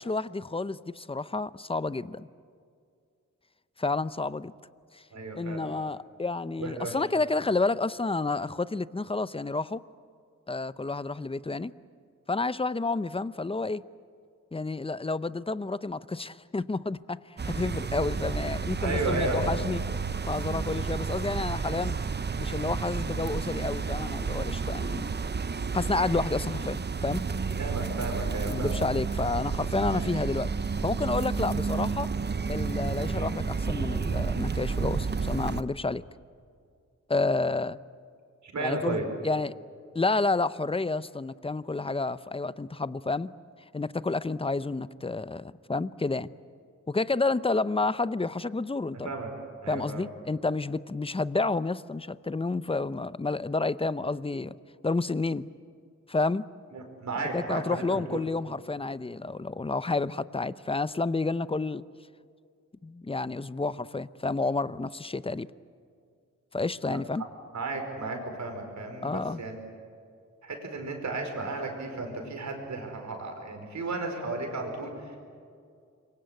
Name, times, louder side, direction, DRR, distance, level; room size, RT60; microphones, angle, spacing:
voice 1, 0.0-2.3 3.8-4.5 4.9-5.0 5.3-9.8 10.5-11.7 12.3-13.8 14.5-19.8 20.3-22.0 22.4-25.1 25.7-27.2 28.5-30.5 30.8-32.1 32.5-36.0 37.1-37.8 38.6-39.6 39.9-43.3 43.7-46.3 46.9-49.1 49.7-54.5 54.8-55.5 56.1-56.4 57.3-61.8 62.8-65.5 66.5-67.2 69.0-69.4, left 3 dB, 20° left, 16 dB, 0.6 m, -30 dB
voice 2, 5.1-5.7 6.6-7.0 18.8-19.5 27.6-28.8 29.9-30.2 38.4-39.0 48.9-49.3 49.6-50.1 56.7-58.3 66.9-67.3 67.5-69.5 70.4-75.2, right 2 dB, 70° right, 4 dB, 5.1 m, -34 dB
sound 1, 17.4-35.6, right 5 dB, 35° right, 0.8 m, -31 dB
26.5 x 23.5 x 8.3 m, 2.3 s
wide cardioid pair, 90°, 29 cm